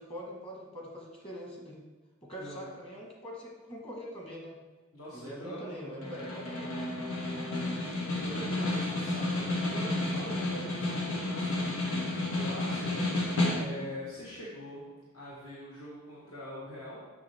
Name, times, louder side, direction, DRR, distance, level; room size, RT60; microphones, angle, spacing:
voice 1, 0.0-1.8 2.2-4.6 5.1-6.9, equal, 25° left, -1 dB, 1.4 m, -43 dB
voice 2, 2.4-2.7 4.9-5.8 6.1-6.8 8.1-12.0 12.2-17.0, equal, 65° left, -7 dB, 1.4 m, -43 dB
Snare drum, 6.0-14.0, left 2 dB, 90° left, 1.6 m, -31 dB
6.9 x 6.0 x 3.5 m, 1.2 s
head